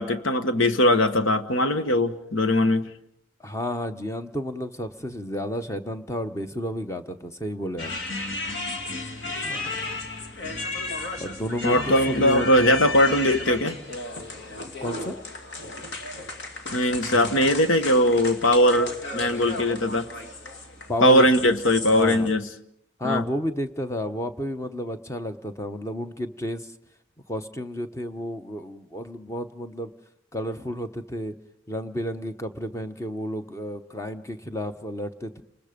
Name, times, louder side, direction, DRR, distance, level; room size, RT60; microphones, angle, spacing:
voice 1, 0.0-2.9 11.6-13.8 16.7-20.1 21.0-22.5 23.0-23.2, left 1 dB, 90° left, 10 dB, 1.3 m, -20 dB
voice 2, 3.4-7.9 9.4-10.0 11.2-12.8 14.8-15.2 20.9-21.6 21.9-22.3 23.0-26.7 27.3-29.9 30.3-31.3 31.7-35.4, left 1 dB, 15° left, 8 dB, 0.9 m, -31 dB
sound 1, 7.8-22.3, left 2 dB, 60° left, 2.4 m, -34 dB
30.0 x 20.5 x 5.2 m, 0.73 s
head